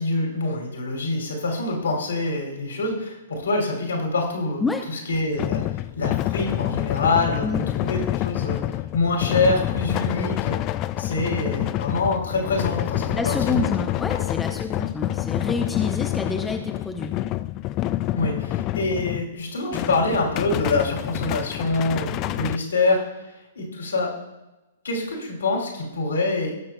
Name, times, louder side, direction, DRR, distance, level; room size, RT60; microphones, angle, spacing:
voice 1, 0.0-4.6 5.1-8.6 8.9-10.5 11.0-13.6 18.1-23.0 23.6-24.1 24.8-26.5, left 3 dB, 70° left, 1 dB, 2.7 m, -25 dB
sound 1, 5.1-19.3 19.7-22.6, left 14 dB, 30° left, 0.3 m, -27 dB
voice 2, 13.1-17.1, left 4 dB, 10° left, 3 dB, 0.8 m, -28 dB
19.0 x 6.6 x 2.2 m, 1.0 s
figure-of-eight pair, 115°, 0 cm